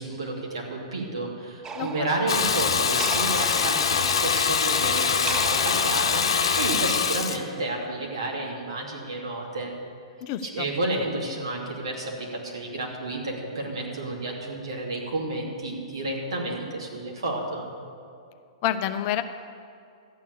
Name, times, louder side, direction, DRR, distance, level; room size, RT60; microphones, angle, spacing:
voice 1, 0.0-9.7 10.4-17.7, right 2 dB, 70° right, -1 dB, 2.8 m, -31 dB
sound 1, 1.6-6.9, right 5 dB, 20° right, 0.8 m, -39 dB
voice 2, 1.7-2.2 10.2-10.7 18.6-19.2, left 11 dB, 40° left, 10 dB, 0.7 m, -28 dB
Water tap faucet / Bathtub (filling or washing), 2.3-7.4, left 6 dB, 65° left, 1.0 m, -23 dB
13.0 x 9.2 x 6.8 m, 2.4 s
figure-of-eight pair, 105°, 3 cm